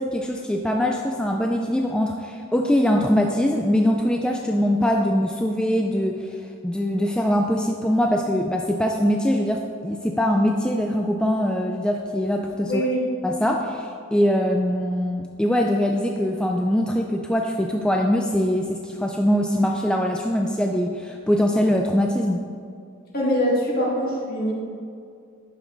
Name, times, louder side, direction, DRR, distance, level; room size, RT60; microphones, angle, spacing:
voice 1, 0.0-12.8 13.2-22.4, equal, 5° left, 1 dB, 0.3 m, -22 dB
voice 2, 12.6-13.0 23.1-24.5, equal, 50° left, -4 dB, 2.0 m, -23 dB
11.0 x 5.0 x 3.9 m, 2.3 s
head